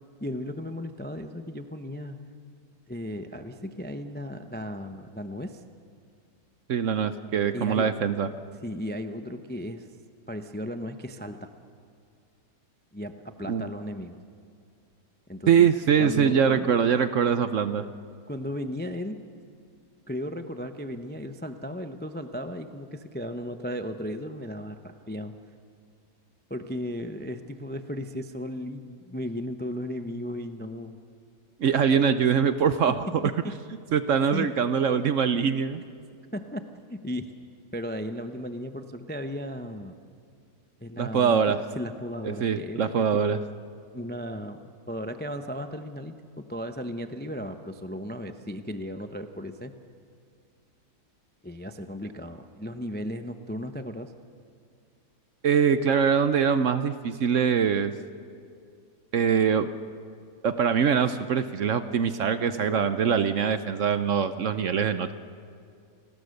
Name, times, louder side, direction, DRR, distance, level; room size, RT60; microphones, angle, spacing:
voice 1, 0.2-2.2 2.9-5.6 7.5-7.9 8.6-9.9 10.3-11.5 12.9-14.2 15.3-15.7 16.0-17.0 18.3-19.2 20.1-25.3 26.5-31.0 31.9-32.0 33.4-33.5 34.3-34.5 36.3-36.6 36.9-37.3 37.7-40.0 40.8-41.4 41.7-43.0 43.9-44.6 44.9-49.7 51.4-54.1, left 1 dB, 15° left, 7 dB, 0.4 m, -35 dB
voice 2, 6.7-8.3 13.5-13.7 15.5-17.9 31.6-32.9 33.9-35.8 41.0-41.6 42.2-43.4 55.4-57.9 59.1-59.7 60.4-65.1, right 7 dB, 60° right, 11 dB, 0.9 m, -23 dB
29.5 x 19.5 x 6.6 m, 2.3 s
omnidirectional pair, 1.8 m